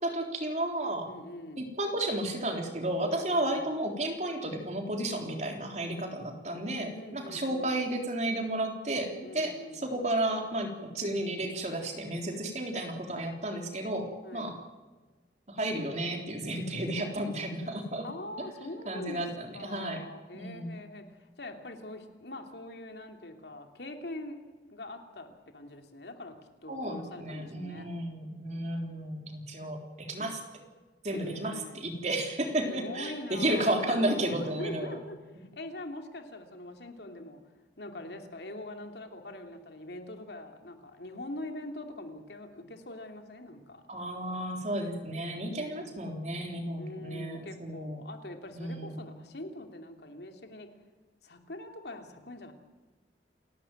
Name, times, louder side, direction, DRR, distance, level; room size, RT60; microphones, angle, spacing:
voice 1, 0.0-1.1 1.6-14.6 15.5-18.1 18.4-18.5 18.9-20.0 20.3-20.7 26.7-30.4 31.0-35.0 43.9-48.0 48.5-48.9, right 1 dB, 40° right, 3 dB, 3.7 m, -32 dB
voice 2, 1.1-1.7 3.1-3.7 6.9-7.8 9.2-10.0 14.2-14.5 18.0-19.2 19.5-24.4 24.7-26.4 26.6-27.9 29.5-29.6 30.2-30.3 31.1-31.8 32.6-37.4 37.8-43.8 45.6-45.9 46.8-50.7 51.2-52.5, left 1 dB, 70° left, 5 dB, 2.8 m, -43 dB
29.0 x 12.5 x 9.2 m, 1.2 s
head